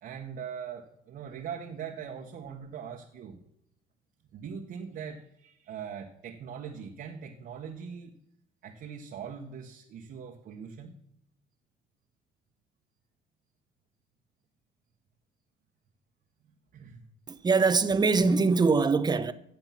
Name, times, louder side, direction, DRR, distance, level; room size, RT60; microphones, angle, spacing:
voice 1, 0.0-3.4 4.3-8.1 8.6-10.9 16.7-17.1, right 7 dB, 60° right, 1.6 m, -41 dB
voice 2, 17.3-19.3, right 4 dB, 25° right, 0.9 m, -23 dB
15.5 x 7.9 x 6.0 m
cardioid pair, 110°, 17 cm